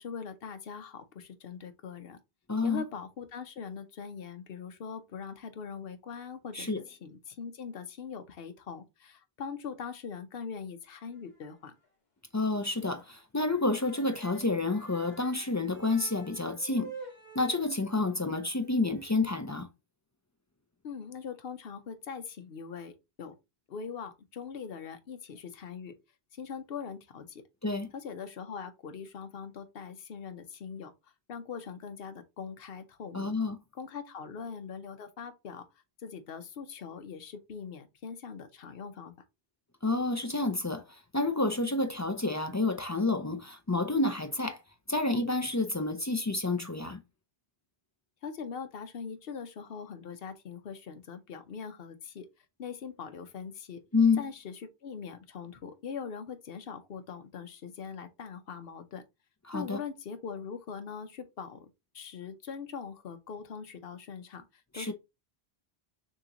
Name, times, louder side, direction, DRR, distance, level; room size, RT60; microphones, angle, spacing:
voice 1, 0.0-2.2 2.6-11.7 20.8-23.4 23.7-25.9 26.3-27.4 27.9-33.4 33.7-35.7 36.0-39.1 48.2-52.3 52.6-53.8 54.2-59.0 59.5-64.9, left 6 dB, 65° left, 1.0 m, -42 dB
voice 2, 2.5-2.8 6.5-6.8 12.3-16.9 17.3-19.7 27.6-27.9 33.1-33.6 39.8-44.6 44.9-47.0 53.9-54.2 59.5-59.8 64.7-64.9, left 3 dB, 25° left, 0.4 m, -29 dB
sound 1, 10.9-11.6 11.8-11.9 12.3-12.5 12.8-13.0 13.3-19.3, right 3 dB, 45° left, 1.6 m, -50 dB
6.3 x 2.9 x 2.9 m
omnidirectional pair, 1.1 m